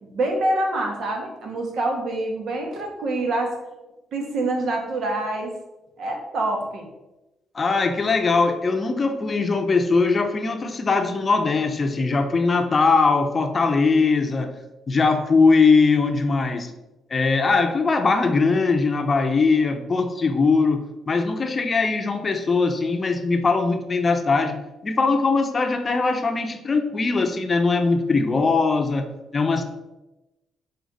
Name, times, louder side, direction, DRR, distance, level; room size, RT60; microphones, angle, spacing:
voice 1, 0.0-3.5 4.1-5.5 6.0-6.9, right 2 dB, 65° right, 2 dB, 1.4 m, -26 dB
voice 2, 7.5-14.5 14.9-16.7 17.1-24.6 24.8-29.6, left 4 dB, 35° left, 6 dB, 0.7 m, -21 dB
6.3 x 4.3 x 4.0 m, 1.0 s
cardioid pair, 90°, 0 cm